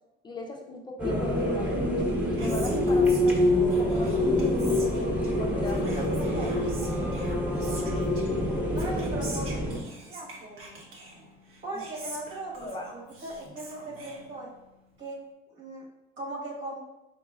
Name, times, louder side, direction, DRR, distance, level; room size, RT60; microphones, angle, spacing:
voice 1, 0.2-1.9 2.3-4.9 5.4-6.0 11.7-12.1 12.6-12.9, left 2 dB, 20° left, 2 dB, 0.4 m, -39 dB
sound 1, 1.0-9.8, left 1 dB, 5° right, 0.9 m, -26 dB
Whispering, 1.9-14.8, right 2 dB, 85° right, 1.1 m, -45 dB
voice 2, 6.1-6.7 8.7-9.7 10.0-10.8 11.6-14.5 15.0-15.2 15.5-15.8 16.2-16.8, right 2 dB, 65° right, -3 dB, 1.5 m, -38 dB
5.1 x 4.0 x 2.4 m, 0.98 s
cardioid pair, 140°, 21 cm